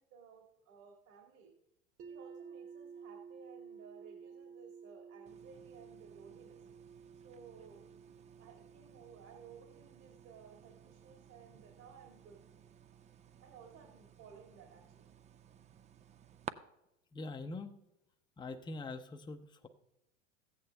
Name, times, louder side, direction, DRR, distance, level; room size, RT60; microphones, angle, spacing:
voice 1, 0.0-1.5 2.1-6.7 7.2-7.9 8.4-12.4 13.4-15.1, right 6 dB, 55° right, 3 dB, 2.0 m, -57 dB
sound 1, 2.0-13.9, right 6 dB, 40° right, 1.4 m, -55 dB
sound 2, 5.2-16.5, right 8 dB, 20° right, 0.4 m, -55 dB
voice 2, 17.1-17.7 18.4-19.7, left 3 dB, 10° left, 5 dB, 0.7 m, -43 dB
14.5 x 8.8 x 3.4 m, 0.85 s
hypercardioid pair, 90°, 37 cm